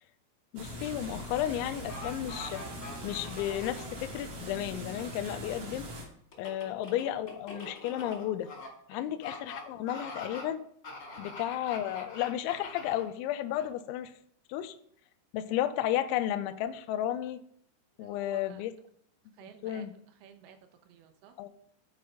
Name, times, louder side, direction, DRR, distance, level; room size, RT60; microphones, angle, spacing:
voice 1, 0.5-2.6 3.0-5.9 6.4-8.5 8.9-10.6 11.2-14.1 14.5-14.7 15.3-17.4 18.0-18.7 19.6-19.9 21.4-21.5, left 12 dB, 80° left, 9 dB, 2.8 m, -33 dB
sound 1, 0.5-6.0, equal, 55° right, 1.8 m, -41 dB
sound 2, 1.9-3.9 6.3-8.7 9.2-9.6 9.9-10.4 10.8-13.0 13.5-13.7, left 3 dB, 30° left, 1.6 m, -43 dB
voice 2, 8.9-9.2 11.0-11.3 18.0-18.6 19.3-21.4, right 8 dB, 80° right, 6 dB, 2.3 m, -54 dB
12.0 x 4.7 x 5.0 m, 0.64 s
omnidirectional pair, 5.7 m